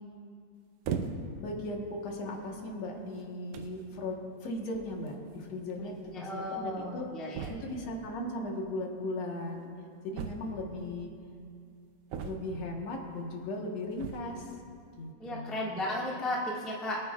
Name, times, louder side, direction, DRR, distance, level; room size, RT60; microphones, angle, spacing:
sound 1, 0.8-1.5 2.2-2.4 3.2-3.3 3.5-3.8 5.1-5.2 5.4-5.5 5.7-5.8 7.3-7.9 10.1-10.8 12.1-12.7 13.9-14.4, right 6 dB, 75° right, 1.5 m, -37 dB
voice 1, 1.4-7.1 7.6-9.7 10.0-11.1 12.2-14.6 15.0-15.7, left 1 dB, 65° left, 0 dB, 2.4 m, -37 dB
voice 2, 5.8-7.5 15.2-17.0, left 1 dB, ahead, -5 dB, 0.4 m, -35 dB
25.0 x 9.2 x 2.3 m, 2.3 s
omnidirectional pair, 3.4 m